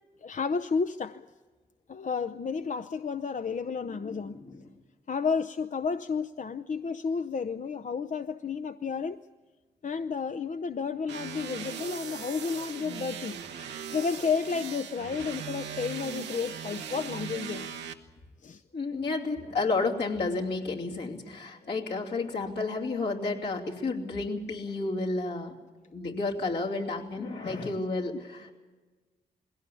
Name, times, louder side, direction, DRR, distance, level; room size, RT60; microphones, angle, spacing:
voice 1, 0.2-1.3 1.9-4.4 5.1-9.2 9.8-13.4 13.9-17.7 18.4-18.6 21.6-21.7 27.4-27.7 28.1-28.2, left 5 dB, 45° left, 0.6 m, -32 dB
voice 2, 3.9-4.6 18.7-25.5 25.9-28.5, left 3 dB, 75° left, 2.9 m, -31 dB
sound 1, 11.1-17.9, right 7 dB, 85° right, 1.0 m, -39 dB
21.0 x 17.0 x 8.4 m
supercardioid pair, 40°, 18 cm